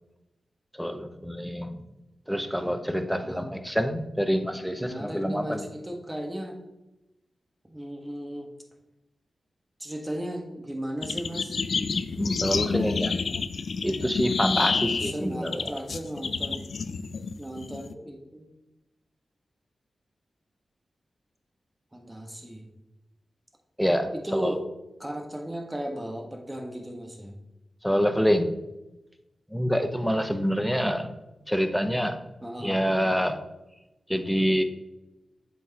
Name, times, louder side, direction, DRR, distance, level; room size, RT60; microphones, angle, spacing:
voice 1, 0.7-1.8 2.3-5.7 12.2-13.1 13.8-15.7 23.8-24.6 27.8-28.5 29.5-31.1 31.5-32.2 32.6-33.4 34.1-34.6, equal, ahead, 8 dB, 0.8 m, -26 dB
voice 2, 3.1-3.5 4.4-6.6 7.6-8.5 9.8-11.6 14.6-16.7 17.4-18.5 21.9-22.7 24.1-24.6 25.0-27.4 32.4-32.8, equal, 20° right, 2 dB, 1.4 m, -36 dB
sound 1, 11.0-17.9, left 5 dB, 70° left, 0.3 m, -29 dB
7.7 x 4.7 x 2.9 m, 0.99 s
cardioid pair, 45°, 0 cm